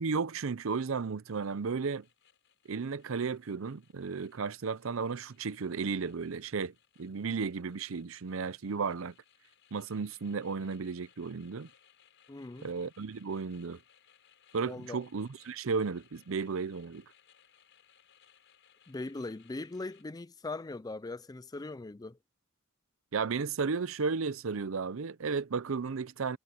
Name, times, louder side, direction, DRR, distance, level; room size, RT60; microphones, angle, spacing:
voice 1, 0.0-2.1 2.7-9.1 9.7-11.7 12.6-13.8 14.5-17.0 23.1-26.4, right 5 dB, 70° right, 0.6 m, -34 dB
sound 1, 1.2-20.0, left 9 dB, 60° left, 7.5 m, -65 dB
voice 2, 12.3-12.7 14.7-15.0 18.9-22.2, left 2 dB, 20° left, 0.4 m, -40 dB
head